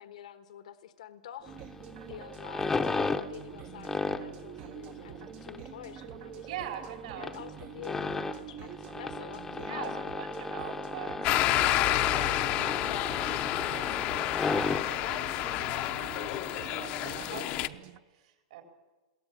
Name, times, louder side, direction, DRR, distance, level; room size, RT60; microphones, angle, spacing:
voice 1, 0.0-1.6 2.1-6.5 7.2-10.2 15.5-16.6, left 10 dB, 80° left, 9 dB, 1.4 m, -47 dB
sound 1, 1.4-18.0, right 12 dB, 40° right, 0.7 m, -46 dB
sound 2, 1.5-17.3, left 3 dB, 10° left, 0.8 m, -36 dB
voice 2, 6.5-7.4 9.6-13.4 13.7-18.6, right 9 dB, 70° right, 2 dB, 3.8 m, -44 dB
sound 3, 11.2-17.7, left 15 dB, 40° left, 0.7 m, -29 dB
22.0 x 17.0 x 8.6 m, 1.2 s
supercardioid pair, 145°, 4 cm